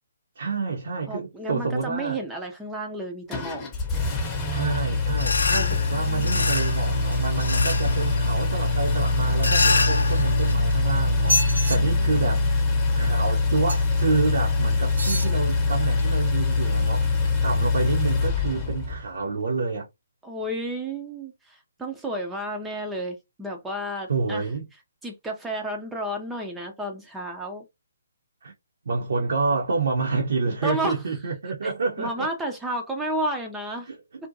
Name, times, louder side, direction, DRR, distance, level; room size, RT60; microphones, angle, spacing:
voice 1, 0.4-2.2 4.5-12.4 12.9-19.9 24.1-24.7 28.4-28.5 28.9-32.3 33.9-34.0, right 4 dB, 55° right, 0.5 m, -28 dB
voice 2, 1.1-3.6 20.2-24.5 25.0-27.6 30.6-31.0 31.6-31.7 32.0-33.9, right 1 dB, 5° right, 0.4 m, -32 dB
Engine, 3.3-19.0, left 3 dB, 20° left, 0.7 m, -24 dB
sound 1, 5.2-10.5, left 3 dB, 70° left, 0.5 m, -27 dB
sound 2, 10.0-10.7 11.2-11.8 13.7-14.0 14.9-15.3 16.0-16.1, equal, 75° right, 0.9 m, -28 dB
2.5 x 2.1 x 2.6 m
figure-of-eight pair, 135°, 0 cm